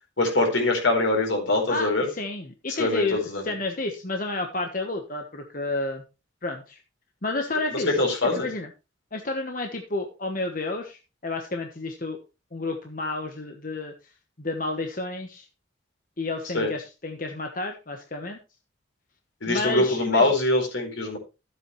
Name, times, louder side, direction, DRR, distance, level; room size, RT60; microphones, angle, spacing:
voice 1, 0.2-2.1 2.8-3.5 7.7-8.5 16.5-16.7 19.4-21.2, left 2 dB, 85° left, 1 dB, 4.5 m, -23 dB
voice 2, 1.7-6.0 6.4-6.8 7.2-7.9 8.3-8.7 9.1-12.2 12.5-13.9 14.4-15.4 16.2-18.4 19.5-20.3, left 2 dB, 45° left, 3 dB, 1.2 m, -31 dB
13.0 x 8.0 x 3.2 m, 0.29 s
head